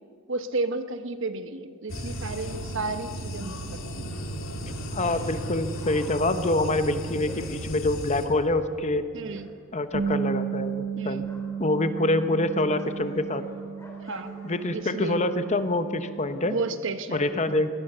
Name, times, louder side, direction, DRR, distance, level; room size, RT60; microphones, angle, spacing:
voice 1, 0.3-4.1 9.1-9.5 11.0-11.3 14.1-14.3 14.7-15.2 16.4-17.6, right 3 dB, 60° right, 10 dB, 1.1 m, -32 dB
sound 1, 1.9-8.3, right 1 dB, 65° left, 2.6 m, -35 dB
voice 2, 4.9-9.0 9.7-11.2 11.6-13.4 14.4-16.6 17.1-17.7, left 2 dB, 30° left, 10 dB, 0.9 m, -26 dB
Dog, 5.8-9.5 9.7-11.6 12.0-14.9 15.5-15.6, left 1 dB, 15° left, 3.8 m, -51 dB
Bass guitar, 9.9-16.2, right 7 dB, 85° right, 1.5 m, -33 dB
22.5 x 18.5 x 6.8 m, 2.3 s
head